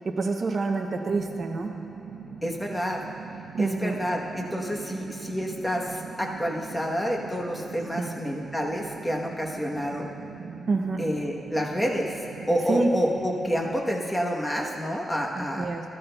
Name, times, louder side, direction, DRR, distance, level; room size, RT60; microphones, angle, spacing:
voice 1, 0.0-1.7 3.5-4.0 8.0-8.1 10.7-11.0 12.7-12.9 15.4-15.8, right 3 dB, 40° right, 3 dB, 0.6 m, -27 dB
sound 1, 1.0-13.8, right 5 dB, 85° right, 0.7 m, -41 dB
voice 2, 2.4-3.0 3.6-10.1 11.0-12.1 12.5-15.7, equal, 10° left, -1 dB, 1.0 m, -28 dB
13.5 x 13.0 x 2.3 m, 2.9 s
wide cardioid pair, 135°, 0 cm